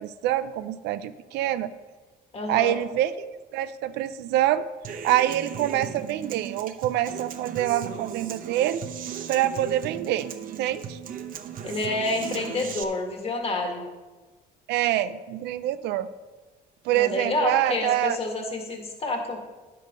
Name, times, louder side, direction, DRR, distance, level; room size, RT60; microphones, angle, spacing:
voice 1, 0.0-1.7 2.5-3.1 3.5-8.8 9.3-11.0 14.7-16.1 16.8-18.2, right 13 dB, 85° right, 13 dB, 0.5 m, -26 dB
voice 2, 2.3-2.7 11.6-13.8 16.9-19.4, left 2 dB, 35° left, 2 dB, 1.8 m, -28 dB
Human voice / Acoustic guitar, 4.8-12.8, right 8 dB, 55° right, 0.8 m, -36 dB
10.5 x 6.7 x 5.2 m, 1.3 s
cardioid pair, 110°, 17 cm